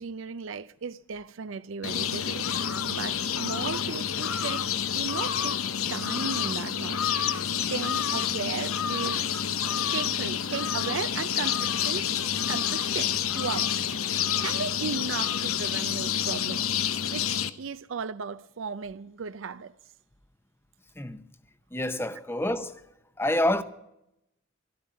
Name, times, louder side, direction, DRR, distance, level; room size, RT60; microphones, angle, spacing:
voice 1, 0.0-5.6 5.9-7.4 7.7-9.3 9.9-12.1 12.5-16.7 17.1-17.3 17.6-19.7, right 5 dB, 65° right, 0.5 m, -36 dB
sound 1, 1.8-17.5, left 8 dB, 85° left, 0.8 m, -28 dB
voice 2, 21.7-22.8 23.2-23.6, left 1 dB, 10° left, 0.7 m, -28 dB
13.0 x 12.0 x 8.1 m
head